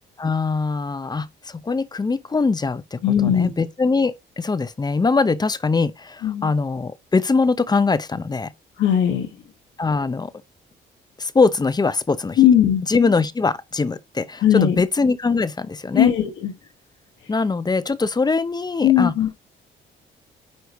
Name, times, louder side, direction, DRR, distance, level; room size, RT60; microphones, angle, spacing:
voice 1, 0.2-8.5 9.8-10.3 11.2-12.4 12.9-16.1 17.3-19.1, left 4 dB, 20° left, 0.6 m, -22 dB
voice 2, 3.0-3.5 6.2-6.5 8.8-9.3 12.4-12.9 14.4-14.8 15.9-16.5 18.8-19.3, left 10 dB, 75° left, 1.3 m, -18 dB
9.5 x 3.2 x 4.1 m
cardioid pair, 90°, 20 cm